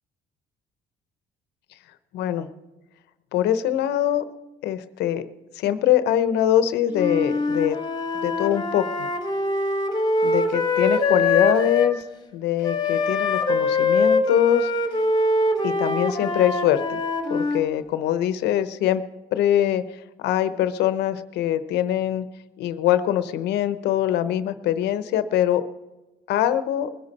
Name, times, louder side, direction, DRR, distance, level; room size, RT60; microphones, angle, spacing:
voice 1, 2.1-2.5 3.3-4.2 4.6-5.3 5.5-7.8 8.2-9.1 10.2-12.0 12.3-14.7 15.6-17.0 17.3-19.0 19.3-19.8 20.2-22.2 22.6-25.6 26.3-26.9, left 11 dB, 80° left, 13 dB, 0.9 m, -23 dB
Wind instrument woodwind instrument, 6.9-11.9 12.6-17.6, left 2 dB, 25° left, 1.5 m, -23 dB
21.0 x 10.5 x 4.2 m, 1.1 s
cardioid pair, 110°, 17 cm